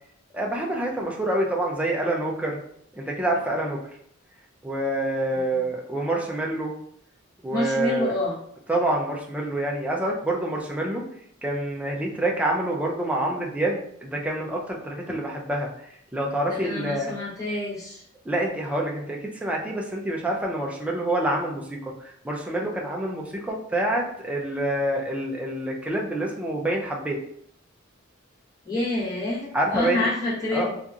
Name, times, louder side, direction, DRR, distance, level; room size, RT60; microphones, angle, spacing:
voice 1, 0.3-2.6 3.0-3.8 4.6-6.7 7.4-8.2 8.7-11.0 11.4-15.9 16.1-17.2 18.3-27.2 29.5-30.1 30.5-30.8, right 1 dB, 5° right, -1 dB, 0.4 m, -27 dB
voice 2, 7.5-8.3 16.5-18.0 28.6-30.7, left 2 dB, 15° left, -10 dB, 1.1 m, -27 dB
2.8 x 2.4 x 2.4 m, 0.68 s
head